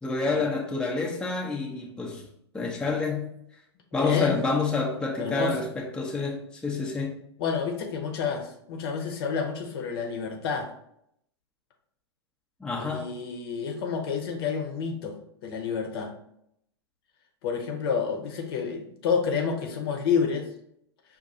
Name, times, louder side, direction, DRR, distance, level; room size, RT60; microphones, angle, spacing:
voice 1, 0.0-2.2 2.5-3.3 3.9-7.2 12.6-13.1, left 3 dB, 5° left, -2 dB, 0.7 m, -28 dB
voice 2, 3.9-4.3 5.2-5.5 7.4-10.7 12.8-15.1 15.4-16.1 17.4-20.5, left 6 dB, 55° left, 4 dB, 0.8 m, -29 dB
5.3 x 2.6 x 2.6 m, 0.73 s
hypercardioid pair, 110°, 15 cm